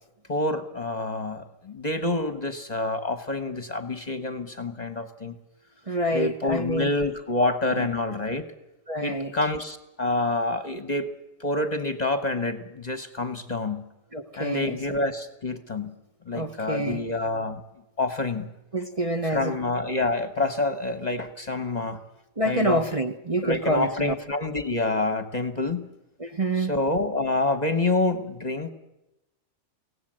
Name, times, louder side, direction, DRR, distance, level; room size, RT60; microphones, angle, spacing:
voice 1, 0.3-5.3 6.1-8.4 9.0-11.1 11.4-13.9 14.4-15.9 16.3-17.6 18.0-18.5 19.3-22.0 22.4-22.9 23.4-25.9 26.6-28.7, left 2 dB, 30° left, 9 dB, 1.3 m, -27 dB
voice 2, 5.9-6.9 7.4-7.9 8.9-9.3 14.1-14.8 16.3-17.0 18.7-19.6 22.4-24.1 26.2-26.7, right 1 dB, 30° right, 5 dB, 1.1 m, -27 dB
24.5 x 17.5 x 7.6 m, 0.93 s
omnidirectional pair, 1.4 m